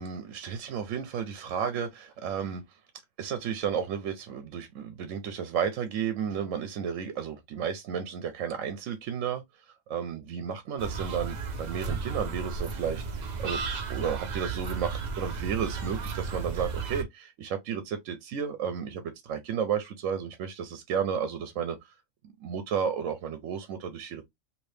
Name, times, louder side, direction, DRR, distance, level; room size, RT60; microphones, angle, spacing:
voice 1, 0.0-2.6 3.2-9.4 9.9-13.0 13.4-13.6 13.9-21.8 22.4-24.3, right 7 dB, 80° right, 1.0 m, -32 dB
sound 1, 10.8-17.0, right 5 dB, 45° right, 0.6 m, -34 dB
3.3 x 2.8 x 2.7 m
omnidirectional pair, 1.3 m